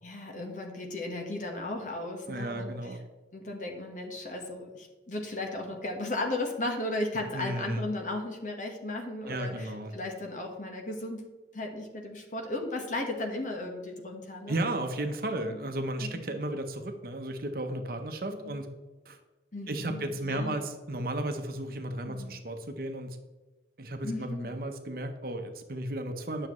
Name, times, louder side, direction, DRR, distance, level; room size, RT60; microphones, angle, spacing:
voice 1, 0.0-3.0 3.3-11.2 11.5-14.6 15.3-15.6 16.1-16.3 18.4-18.6 19.5-20.6 22.1-22.3 24.0-24.5, left 2 dB, 45° left, 2 dB, 1.3 m, -35 dB
voice 2, 2.3-3.0 7.3-7.8 9.3-9.9 14.5-18.7 19.1-19.2 19.7-23.2 23.8-26.5, right 1 dB, 55° right, 6 dB, 0.9 m, -34 dB
9.5 x 6.5 x 3.1 m, 1.2 s
head